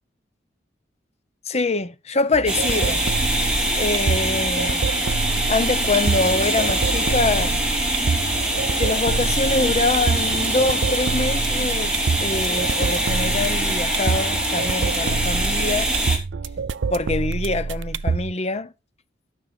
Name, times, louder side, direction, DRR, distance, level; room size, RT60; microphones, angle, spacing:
voice 1, 1.5-3.1 3.7-4.8 5.5-7.6 8.8-11.9 12.2-15.9 16.9-18.7, left 3 dB, 35° left, 0.8 m, -24 dB
sound 1, 2.3-18.3, right 4 dB, 90° right, 0.5 m, -27 dB
sound 2, 2.5-16.2, right 1 dB, 5° right, 3.2 m, -23 dB
12.0 x 6.4 x 5.3 m
head